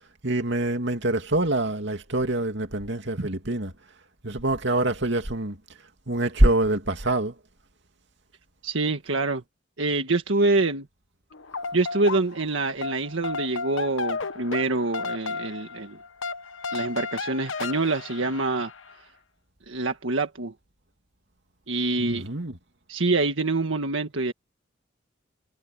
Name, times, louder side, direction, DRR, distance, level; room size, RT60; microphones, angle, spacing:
voice 1, 0.2-3.7 4.2-5.6 6.1-7.3 22.0-22.5, right 1 dB, 65° right, 2.7 m, -25 dB
voice 2, 8.6-9.4 9.8-10.9 11.7-16.0 16.7-18.7 19.7-20.5 21.7-22.3 22.9-24.3, right 3 dB, 85° right, 1.7 m, -26 dB
sound 1, 11.3-12.5 12.8-18.9, left 4 dB, 85° left, 1.3 m, -34 dB
head